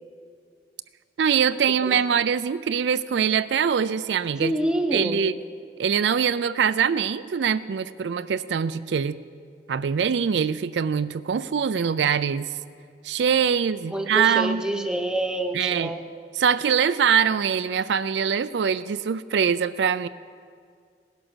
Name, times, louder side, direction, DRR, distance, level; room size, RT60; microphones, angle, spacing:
voice 1, 1.2-4.5 4.9-5.4 5.8-9.2 9.7-12.5 13.0-14.6 15.5-15.9 16.4-20.1, right 7 dB, 70° right, 13 dB, 0.4 m, -23 dB
voice 2, 4.4-5.2 13.9-16.0, right 1 dB, 5° right, 5 dB, 0.9 m, -27 dB
17.5 x 11.0 x 6.2 m, 2.2 s
head